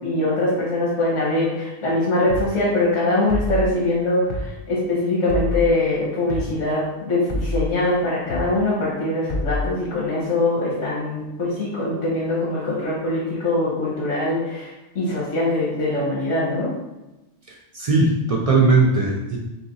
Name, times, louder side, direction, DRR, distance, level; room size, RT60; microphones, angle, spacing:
voice 1, 0.0-16.7, left 2 dB, 90° left, -7 dB, 1.4 m, -22 dB
sound 1, 2.3-2.5 3.3-3.7 4.3-4.5 5.3-5.7 6.3-6.5 7.3-7.7 8.3-8.5 9.3-9.7, left 1 dB, 40° left, 0.4 m, -26 dB
voice 2, 17.7-19.4, right 3 dB, 50° right, -1 dB, 0.4 m, -18 dB
3.3 x 2.9 x 3.9 m, 0.99 s
omnidirectional pair, 1.2 m